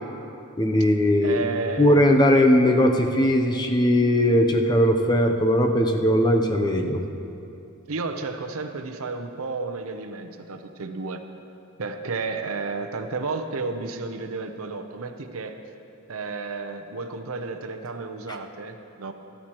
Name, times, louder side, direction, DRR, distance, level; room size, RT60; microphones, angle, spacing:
voice 1, 0.6-1.4 1.8-7.0, left 1 dB, 20° left, 3 dB, 0.6 m, -19 dB
voice 2, 1.2-2.0 7.9-11.2 11.8-15.6 16.1-19.1, right 4 dB, 75° right, 6 dB, 0.7 m, -32 dB
14.0 x 13.0 x 3.0 m, 2.7 s
head